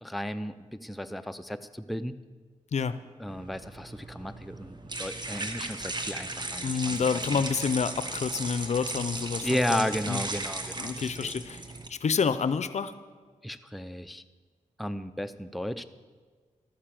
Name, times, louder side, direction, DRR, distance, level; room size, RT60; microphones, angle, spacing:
voice 1, 0.0-2.2 3.2-7.4 9.4-11.4 13.4-14.2 14.8-15.9, equal, ahead, 10 dB, 0.5 m, -34 dB
sound 1, 3.3-11.9, right 2 dB, 35° right, 1.2 m, -36 dB
voice 2, 6.6-10.2 10.8-11.6 11.9-12.9, left 6 dB, 60° left, 13 dB, 0.5 m, -28 dB
13.0 x 6.7 x 7.5 m, 1.5 s
cardioid pair, 60°, 13 cm